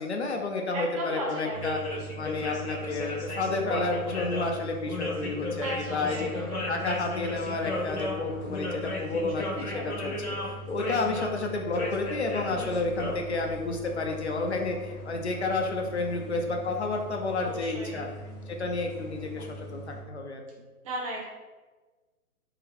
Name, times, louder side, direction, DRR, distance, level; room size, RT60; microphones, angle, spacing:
voice 1, 0.0-1.8 2.2-6.3 6.7-18.1 18.5-20.4, left 3 dB, 50° left, 2 dB, 0.5 m, -31 dB
voice 2, 0.7-2.0 5.6-6.6 9.4-10.0 17.4-18.1 20.8-21.2, equal, 25° right, -4 dB, 0.8 m, -36 dB
sound 1, 1.5-20.0, left 1 dB, 75° left, 1.3 m, -36 dB
3.8 x 2.8 x 3.0 m, 1.3 s
figure-of-eight pair, 135°, 45 cm